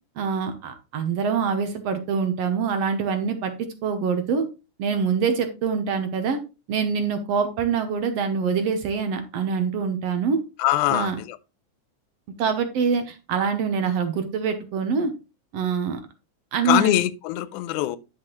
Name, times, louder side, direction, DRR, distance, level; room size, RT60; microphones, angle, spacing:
voice 1, 0.2-4.5 4.8-6.4 6.7-10.4 10.9-11.2 12.4-15.1 15.5-16.0 16.5-17.0, right 5 dB, 65° right, 1.9 m, -25 dB
voice 2, 10.6-11.4 16.7-18.0, left 14 dB, 85° left, 2.1 m, -23 dB
10.0 x 6.1 x 3.1 m
omnidirectional pair, 3.5 m